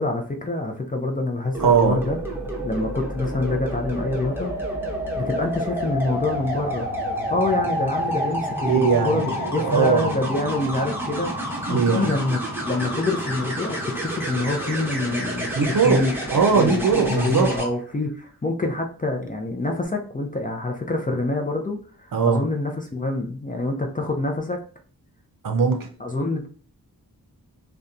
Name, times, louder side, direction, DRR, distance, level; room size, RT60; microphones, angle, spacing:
voice 1, 0.0-2.2 2.6-4.5 5.2-6.9 7.3-12.4 12.7-15.5 15.8-16.1 16.5-16.8 17.1-24.6 26.0-26.5, left 2 dB, 20° left, 0.5 m, -26 dB
sound 1, 1.5-17.7 19.6-19.8, equal, 5° right, 0.9 m, -29 dB
voice 2, 1.6-2.0 8.7-9.3 9.6-10.1 11.7-12.1 15.5-16.0 16.3-17.5 22.1-22.4 25.4-25.9, right 5 dB, 55° right, 0.6 m, -20 dB
2.7 x 2.2 x 2.4 m
cardioid pair, 40°, 40 cm